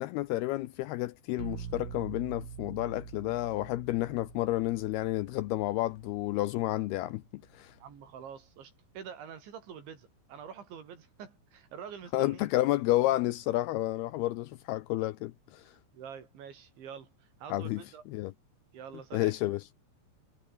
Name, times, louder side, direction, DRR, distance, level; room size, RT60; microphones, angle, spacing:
voice 1, 0.0-7.7 12.1-15.6 17.5-17.8 18.1-18.3 19.1-19.8, left 17 dB, 80° left, 2.4 m, -31 dB
sound 1, 1.4-7.2, right 8 dB, 55° right, 4.4 m, -46 dB
voice 2, 7.8-12.5 15.9-17.1 17.4-18.0 18.7-19.3, right 7 dB, 90° right, 6.3 m, -46 dB
omnidirectional pair, 5.1 m